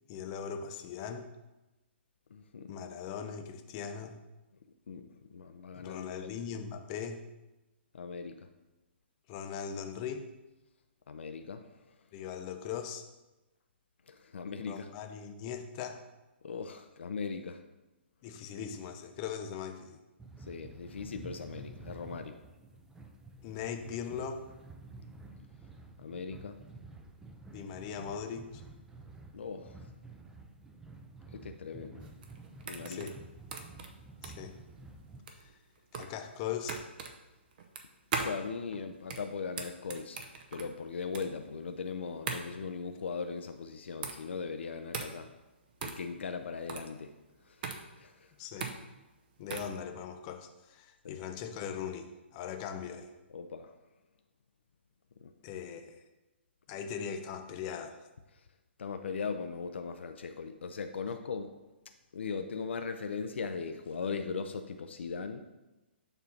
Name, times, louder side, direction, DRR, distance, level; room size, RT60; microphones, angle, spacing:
voice 1, 0.1-1.3 2.7-4.2 5.7-7.2 9.3-10.3 12.1-13.1 14.6-16.0 18.2-20.0 23.4-24.4 27.5-28.6 32.9-33.2 34.2-34.6 35.9-36.8 48.4-48.7 49.4-53.1 55.4-56.0 56.7-58.1, left 7 dB, 35° left, 6 dB, 0.6 m, -40 dB
voice 2, 2.3-2.7 4.9-6.3 7.9-8.5 11.1-11.7 14.1-14.9 16.4-17.6 20.5-22.4 26.0-26.6 29.3-29.8 31.3-32.1 32.7-33.1 38.2-40.2 40.5-45.3 45.8-47.1 47.5-47.6 48.0-48.3 51.0-51.2 53.3-53.7 55.2-55.3 58.8-61.5 62.1-65.4, left 5 dB, 75° left, 7 dB, 0.4 m, -39 dB
sound 1, 20.2-35.2, right 3 dB, 5° right, 0.5 m, -51 dB
sound 2, 32.0-49.8, right 5 dB, 50° right, 0.8 m, -41 dB
7.0 x 2.7 x 5.7 m, 1.0 s
hypercardioid pair, 130°, 6 cm